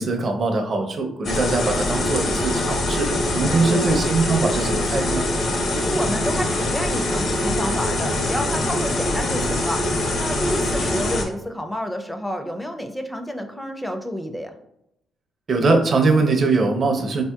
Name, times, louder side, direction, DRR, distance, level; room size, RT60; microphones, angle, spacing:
voice 1, 0.0-5.3 15.5-17.2, right 3 dB, 45° right, 4 dB, 0.5 m, -22 dB
sound 1, 1.2-11.2, left 1 dB, 55° left, 0.7 m, -23 dB
voice 2, 3.4-4.0 5.7-9.8 10.2-14.5, equal, 5° left, 5 dB, 0.4 m, -29 dB
4.0 x 2.7 x 2.3 m, 0.81 s
cardioid pair, 90°, 0 cm